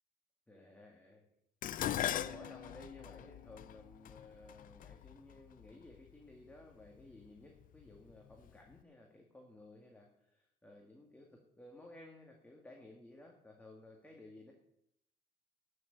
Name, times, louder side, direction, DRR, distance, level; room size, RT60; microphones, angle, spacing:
voice 1, 0.5-1.2 1.9-11.3 11.6-14.5, left 1 dB, 10° left, 0 dB, 2.0 m, -56 dB
Dishes pots and pans, 1.6-6.0 6.9-7.3 7.6-8.5 8.7-8.8, left 12 dB, 55° left, 0.5 m, -40 dB
12.0 x 6.4 x 8.5 m, 0.76 s
cardioid pair, 110°, 17 cm